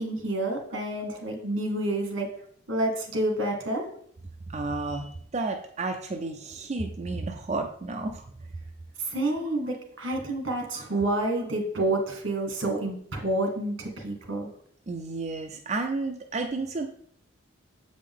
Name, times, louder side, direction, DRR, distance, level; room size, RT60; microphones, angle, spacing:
voice 1, 0.0-2.3 2.7-3.8 9.0-14.5, right 1 dB, 75° right, 2 dB, 1.8 m, -29 dB
voice 2, 4.5-8.2 10.7-10.8 14.9-16.9, right 3 dB, 35° right, 2 dB, 0.4 m, -32 dB
7.5 x 5.1 x 3.6 m, 0.64 s
head